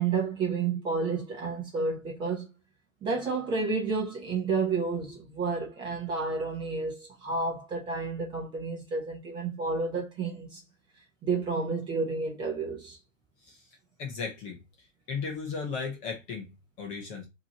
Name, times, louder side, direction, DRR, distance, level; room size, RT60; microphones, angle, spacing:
voice 1, 0.0-2.5 3.0-10.6 11.2-13.0, right 4 dB, 10° right, 0.8 m, -30 dB
voice 2, 14.0-17.3, left 5 dB, 20° left, 0.8 m, -36 dB
5.9 x 2.9 x 2.9 m
hypercardioid pair, 150°, 39 cm